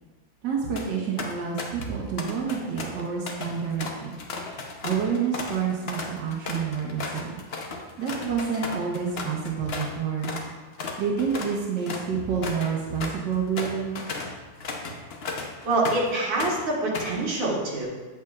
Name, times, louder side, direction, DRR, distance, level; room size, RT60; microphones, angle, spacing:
voice 1, 0.4-4.2 4.8-7.4 8.0-10.4 11.0-14.0, right 6 dB, 65° right, -3 dB, 1.6 m, -28 dB
sound 1, 0.5-0.9 1.2-1.9 2.2-9.9 10.2-10.5 10.8-16.1 16.4-17.2, left 3 dB, 60° left, 0.6 m, -35 dB
voice 2, 15.6-17.9, right 2 dB, 85° right, -4 dB, 2.3 m, -25 dB
8.3 x 7.6 x 2.4 m, 1.3 s
omnidirectional pair, 2.0 m